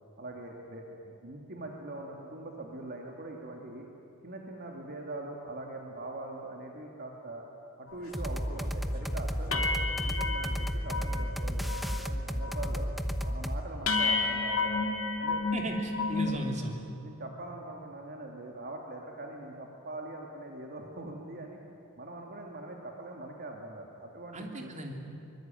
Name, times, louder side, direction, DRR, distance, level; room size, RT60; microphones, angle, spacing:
voice 1, 0.2-3.9 4.2-7.4 7.8-12.9 13.2-14.8 15.1-15.4 17.0-21.6 22.0-24.7, right 2 dB, 50° right, 1 dB, 2.5 m, -42 dB
sound 1, 8.0-8.1 8.5-8.7 9.0-9.1 9.5-11.3 11.6-12.1 12.3-12.8 13.2-13.3 13.9-16.4, left 3 dB, 70° left, 2.4 m, -31 dB
sound 2, 8.1-13.6, equal, ahead, 1.0 m, -32 dB
voice 2, 15.5-16.7 24.3-24.9, equal, 35° right, 2 dB, 3.1 m, -36 dB
24.0 x 22.5 x 9.3 m, 2.6 s
head